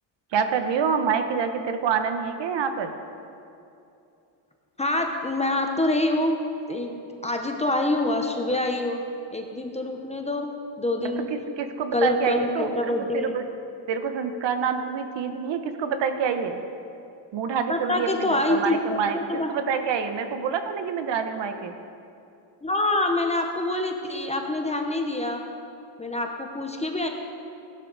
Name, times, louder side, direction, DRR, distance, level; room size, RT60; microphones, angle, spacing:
voice 1, 0.3-2.9 11.0-12.7 13.1-13.4 13.9-16.6 17.3-19.2 19.5-21.7, right 6 dB, 60° right, 7 dB, 1.0 m, -27 dB
voice 2, 4.8-6.4 6.7-9.0 9.3-10.5 10.8-11.3 11.9-13.3 17.7-19.5 22.6-25.4 26.0-27.1, left 1 dB, 15° left, 3 dB, 0.8 m, -26 dB
15.5 x 12.0 x 4.0 m, 2.7 s
cardioid pair, 145°, 50 cm